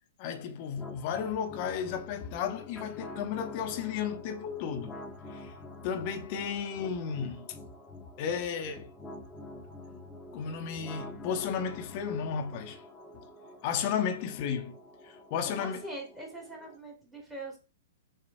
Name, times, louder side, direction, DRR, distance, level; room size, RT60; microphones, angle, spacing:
voice 1, 0.2-5.0 5.3-5.5 5.8-7.5 8.2-8.9 10.3-12.8 13.6-14.8 15.0-15.9, left 7 dB, 45° left, 0.7 m, -33 dB
sound 1, 0.8-16.8, left 1 dB, 10° left, 0.9 m, -47 dB
voice 2, 15.5-17.6, right 1 dB, 10° right, 1.5 m, -42 dB
6.8 x 2.3 x 2.6 m
figure-of-eight pair, 110°, 0 cm